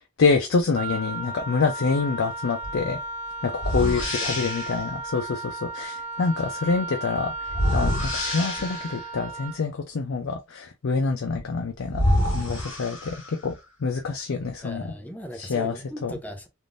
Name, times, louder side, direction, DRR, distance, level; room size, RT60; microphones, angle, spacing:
voice 1, 0.2-3.0 3.4-7.3 7.7-13.2 13.4-13.5 13.8-14.9 15.4-15.7 16.0-16.1, left 4 dB, 85° left, 0.5 m, -26 dB
Wind instrument woodwind instrument, 0.7-9.6, right 2 dB, 40° right, 0.6 m, -34 dB
sound 1, 2.6-2.8 3.6-4.8 7.5-9.1 11.4-11.5 11.9-13.5, left 1 dB, 65° left, 1.7 m, -26 dB
voice 2, 3.8-4.5 14.6-16.5, equal, 10° left, 0.6 m, -38 dB
3.5 x 2.5 x 2.5 m
head